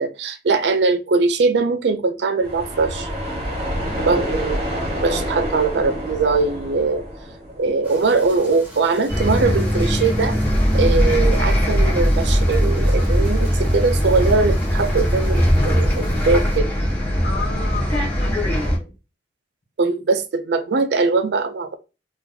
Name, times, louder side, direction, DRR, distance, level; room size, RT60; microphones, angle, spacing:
voice 1, 0.0-3.1 4.1-4.6 5.0-7.0 7.6-10.4 10.7-16.7 19.8-21.8, right 4 dB, 70° right, 0.5 m, -21 dB
sound 1, 2.4-8.2, equal, 40° right, 1.3 m, -27 dB
voice 2, 3.8-4.1 17.2-18.9, left 4 dB, 65° left, 1.0 m, -34 dB
sound 2, 7.8-16.6, equal, 10° right, 1.3 m, -41 dB
Bus, 9.1-18.8, equal, 10° left, 1.2 m, -19 dB
2.8 x 2.5 x 3.8 m
head